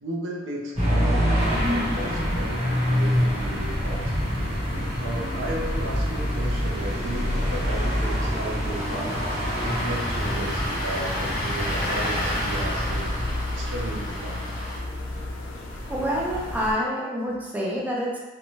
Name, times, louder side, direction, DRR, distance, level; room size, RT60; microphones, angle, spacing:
voice 1, 0.0-4.1 5.0-9.1 9.6-13.1 13.5-14.5, right 1 dB, 80° right, -2 dB, 0.5 m, -34 dB
sound 1, 0.7-13.3, equal, 35° right, 0.7 m, -27 dB
sound 2, 1.4-16.7, left 1 dB, 80° left, 0.5 m, -33 dB
Engine starting, 8.7-14.8, left 1 dB, 45° left, 0.7 m, -31 dB
voice 2, 15.9-18.2, equal, 10° right, -5 dB, 0.4 m, -27 dB
2.6 x 2.2 x 3.0 m, 1.2 s
head